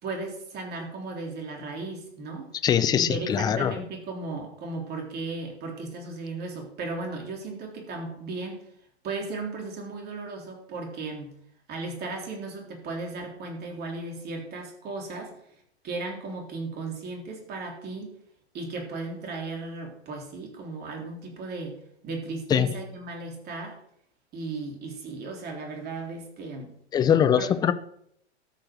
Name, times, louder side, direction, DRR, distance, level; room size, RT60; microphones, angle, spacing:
voice 1, 0.0-2.5 2.9-8.6 9.0-11.4 11.7-15.3 15.8-18.1 18.5-23.8 24.3-26.7 27.4-27.5, right 3 dB, 30° right, 1 dB, 3.6 m, -36 dB
voice 2, 2.6-3.7 22.5-22.7 26.9-27.7, left 9 dB, 10° left, 13 dB, 0.5 m, -22 dB
13.5 x 6.7 x 6.1 m, 0.70 s
hypercardioid pair, 115°, 33 cm